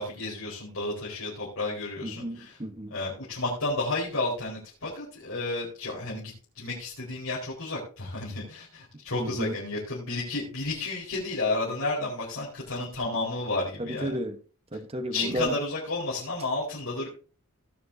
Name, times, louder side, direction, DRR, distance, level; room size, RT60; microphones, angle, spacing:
voice 1, 0.0-2.5 2.9-14.1 15.1-17.1, left 2 dB, 70° left, 4.7 m, -32 dB
voice 2, 2.0-2.9 9.2-9.6 13.8-14.4 14.7-15.6, right 1 dB, 25° right, 1.1 m, -33 dB
18.5 x 7.7 x 2.8 m
head